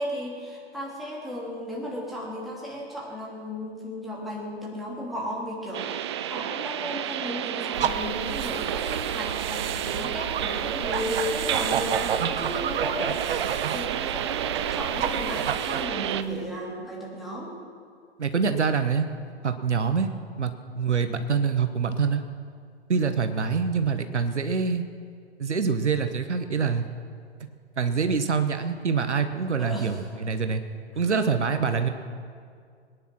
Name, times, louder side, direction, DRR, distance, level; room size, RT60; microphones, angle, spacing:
voice 1, 0.0-17.5 29.6-30.2, equal, ahead, -5 dB, 3.1 m, -34 dB
sound 1, 5.7-16.2, right 10 dB, 25° right, 0.4 m, -31 dB
sound 2, 7.7-16.4, right 8 dB, 55° right, 1.0 m, -31 dB
voice 2, 18.2-19.1 19.4-20.1 20.4-22.2 22.9-24.8 25.4-26.9 27.8-30.6 30.9-31.9, right 5 dB, 85° right, 8 dB, 1.2 m, -25 dB
22.0 x 10.0 x 6.1 m, 2.2 s
hypercardioid pair, 130°, 34 cm